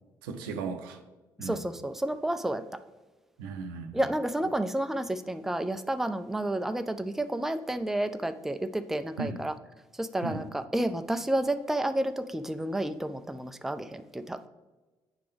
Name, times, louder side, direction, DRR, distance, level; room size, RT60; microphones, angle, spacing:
voice 1, 0.2-1.0 1.4-1.6 3.4-4.0 9.2-9.4 10.2-10.5, right 4 dB, 80° right, 7 dB, 0.5 m, -36 dB
voice 2, 1.4-2.6 3.9-9.5 10.0-14.4, right 1 dB, 5° right, 9 dB, 0.4 m, -30 dB
9.0 x 3.4 x 3.4 m, 1.2 s
hypercardioid pair, 45°, 12 cm